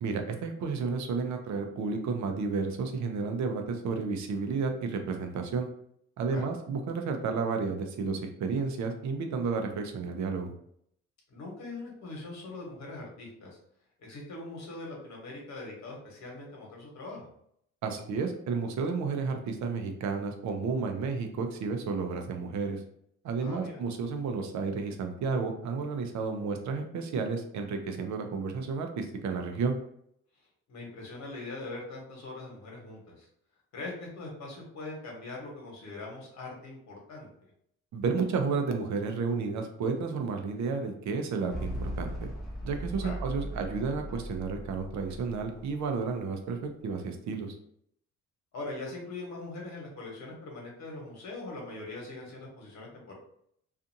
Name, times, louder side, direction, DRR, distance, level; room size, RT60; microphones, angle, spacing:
voice 1, 0.0-5.7 6.2-10.5 17.8-22.8 23.2-29.7 37.9-42.3 42.6-47.6, right 4 dB, 65° right, 4 dB, 0.6 m, -32 dB
voice 2, 11.3-13.6 14.0-17.3 23.4-23.8 30.7-33.3 33.7-37.3 43.0-43.2 48.5-53.1, left 2 dB, 65° left, -2 dB, 1.1 m, -42 dB
sound 1, 41.5-46.0, right 1 dB, ahead, 0.8 m, -38 dB
2.5 x 2.4 x 2.7 m, 0.70 s
cardioid pair, 90°, 30 cm